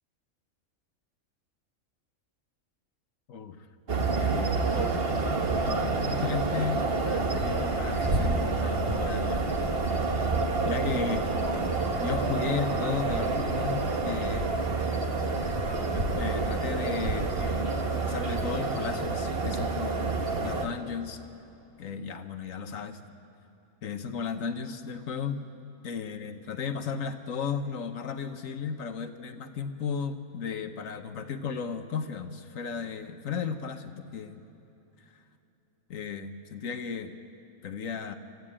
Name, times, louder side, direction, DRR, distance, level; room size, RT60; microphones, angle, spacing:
voice 1, 3.3-3.6 4.2-5.0 5.7-9.5 10.0-10.2 10.6-14.5 15.9-17.7 18.0-20.1 20.4-21.2 21.8-23.0 23.8-25.4 25.8-34.4 35.9-37.1 37.6-38.2, left 6 dB, 70° left, 8 dB, 1.3 m, -35 dB
sound 1, 3.9-20.7, right 3 dB, 45° right, 1.5 m, -28 dB
25.0 x 14.0 x 8.8 m, 2.9 s
omnidirectional pair, 1.5 m